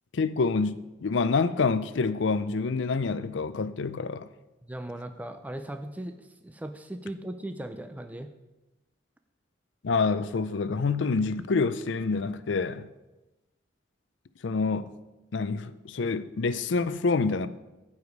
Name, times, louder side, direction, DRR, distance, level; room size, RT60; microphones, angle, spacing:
voice 1, 0.1-4.3 9.8-12.9 14.4-14.9 15.3-17.5, left 4 dB, 70° left, 0.5 m, -27 dB
voice 2, 4.6-8.3, right 1 dB, 10° right, 0.4 m, -38 dB
14.5 x 4.9 x 5.3 m
head